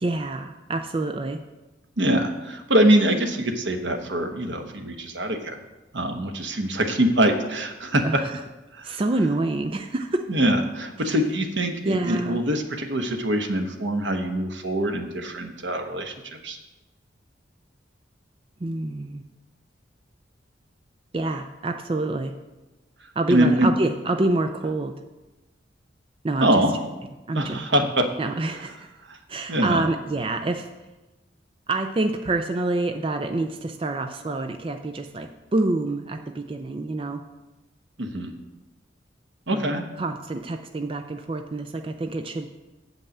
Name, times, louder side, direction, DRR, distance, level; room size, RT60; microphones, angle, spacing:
voice 1, 0.0-1.4 8.0-8.4 8.8-10.2 11.0-11.1 11.8-12.4 18.6-19.2 21.1-22.3 23.2-24.9 26.2-26.6 27.3-27.6 28.2-28.9 29.3-30.7 31.7-37.2 39.5-39.7 40.0-42.5, right 2 dB, 30° right, 6 dB, 0.4 m, -27 dB
voice 2, 2.0-5.6 5.9-8.0 8.8-9.0 10.3-16.1 16.4-16.6 23.3-23.7 26.4-26.7 27.3-28.0 29.1-29.2 29.5-29.8 38.0-38.3 39.5-39.8, right 1 dB, 80° right, 5 dB, 1.1 m, -23 dB
7.7 x 5.4 x 7.2 m, 1.1 s
head